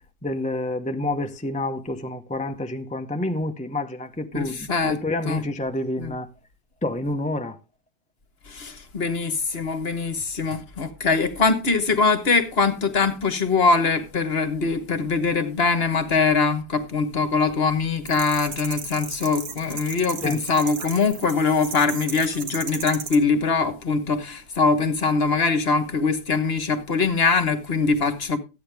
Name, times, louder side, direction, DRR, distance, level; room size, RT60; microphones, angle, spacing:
voice 1, 0.2-6.3 6.8-7.6 20.2-20.4, left 1 dB, 10° left, 0.5 m, -28 dB
voice 2, 4.3-5.0 5.2-5.4 6.0-6.1 8.5-28.4, left 4 dB, 45° left, 1.4 m, -22 dB
sound 1, 18.1-23.2, right 5 dB, 70° right, 2.0 m, -35 dB
13.5 x 9.2 x 3.4 m
omnidirectional pair, 1.6 m